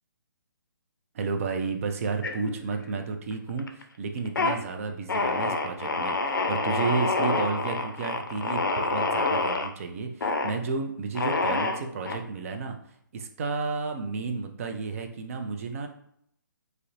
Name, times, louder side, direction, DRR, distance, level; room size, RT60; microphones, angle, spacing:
voice 1, 1.1-12.8 13.1-15.9, right 4 dB, 40° right, 5 dB, 0.4 m, -32 dB
sound 1, 2.2-3.0 3.3-3.8 4.2-4.6 5.1-9.7 10.2-10.6 11.2-12.2, left 3 dB, 70° left, 0.4 m, -27 dB
2.4 x 2.0 x 2.9 m, 0.72 s
figure-of-eight pair, 135°, 11 cm